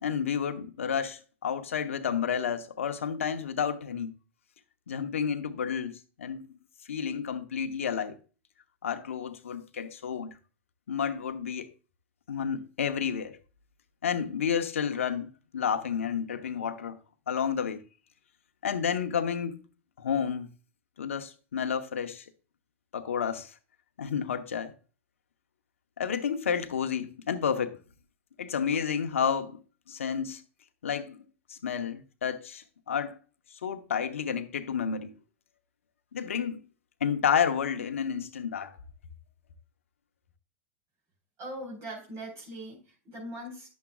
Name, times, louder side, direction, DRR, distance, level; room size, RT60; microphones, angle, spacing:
voice 1, 0.0-4.1 4.9-6.5 6.9-8.2 8.8-10.3 10.9-11.7 12.3-13.4 14.0-17.0 17.3-17.8 18.6-19.6 20.0-20.5 21.0-22.2 22.9-23.5 24.0-24.7 26.0-27.8 28.4-29.6 29.9-30.4 30.8-31.2 31.5-33.2 33.6-35.1 36.1-36.6 37.0-38.8, left 7 dB, 85° left, 1.0 m, -30 dB
voice 2, 41.4-43.7, right 1 dB, 45° right, 4.2 m, -41 dB
10.5 x 7.2 x 2.3 m
hypercardioid pair, 105°, 7 cm